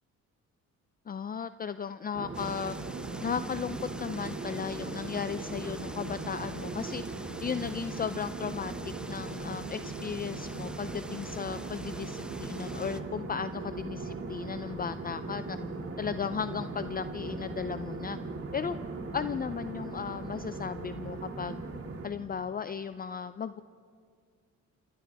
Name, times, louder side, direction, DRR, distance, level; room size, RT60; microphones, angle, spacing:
voice 1, 1.1-2.8 3.2-7.0 7.4-15.6 16.0-18.2 18.5-18.8 19.1-21.6 22.0-23.6, left 7 dB, 30° left, 12 dB, 0.5 m, -35 dB
sound 1, 2.1-22.1, right 3 dB, 50° right, 2.3 m, -39 dB
sound 2, 2.3-13.0, right 1 dB, 5° right, 0.8 m, -47 dB
28.0 x 27.5 x 3.5 m, 2.1 s
cardioid pair, 90°, 30 cm